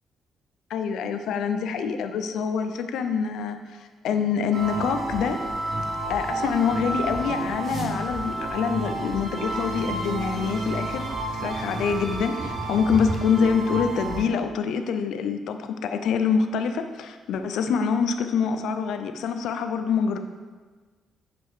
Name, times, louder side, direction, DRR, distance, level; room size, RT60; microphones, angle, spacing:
voice 1, 0.7-5.4 6.1-11.1 11.4-20.2, left 6 dB, 80° left, 7 dB, 0.6 m, -25 dB
sound 1, 4.5-14.2, right 2 dB, 45° right, 1.6 m, -30 dB
8.7 x 5.3 x 4.9 m, 1.4 s
cardioid pair, 90°, 0 cm